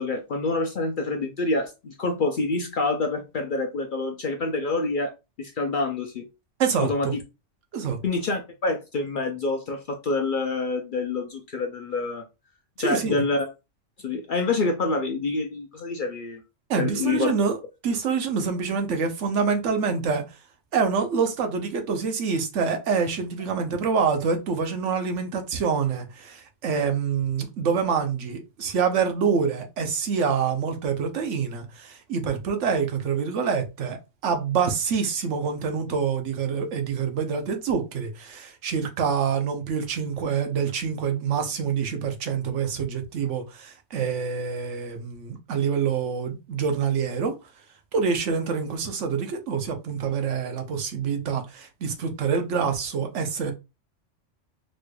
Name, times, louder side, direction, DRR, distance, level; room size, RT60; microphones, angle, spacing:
voice 1, 0.0-5.1 5.4-6.2 6.8-7.1 8.0-12.2 12.8-13.5 14.0-16.4 16.8-17.3, left 3 dB, 55° left, 0.6 m, -27 dB
voice 2, 6.6-7.1 7.7-8.0 12.8-13.3 16.7-17.6 17.8-20.2 20.7-47.3 47.9-53.5, right 6 dB, 75° right, 1.1 m, -26 dB
4.2 x 3.1 x 2.2 m
omnidirectional pair, 1.3 m